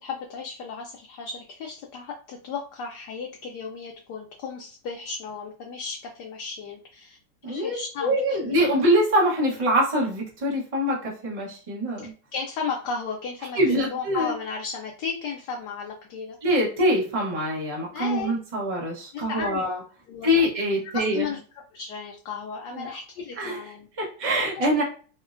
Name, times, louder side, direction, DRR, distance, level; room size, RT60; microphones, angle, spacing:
voice 1, 0.0-7.2 7.5-8.6 12.3-16.4 17.9-18.4 19.1-19.6 20.1-20.5 20.9-21.4 21.7-23.9 24.5-24.7, left 5 dB, 75° left, 0 dB, 1.1 m, -34 dB
voice 2, 7.4-12.1 13.6-14.3 16.4-19.8 20.2-21.3 22.7-22.9 23.4-23.6 24.0-24.8, equal, 60° right, -2 dB, 0.3 m, -24 dB
4.2 x 2.0 x 2.4 m, 0.39 s
omnidirectional pair, 2.0 m